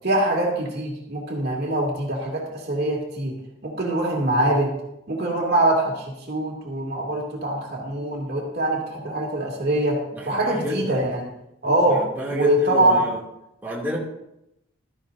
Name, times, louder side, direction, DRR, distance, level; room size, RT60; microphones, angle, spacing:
voice 1, 0.0-3.3 3.6-4.7 5.1-10.0 10.2-11.3 11.6-12.0 12.3-13.0, right 1 dB, 50° right, -1 dB, 2.6 m, -23 dB
voice 2, 10.1-11.0 11.9-13.2 13.6-14.0, right 1 dB, 10° right, -6 dB, 2.6 m, -30 dB
15.5 x 13.0 x 2.7 m, 0.85 s
head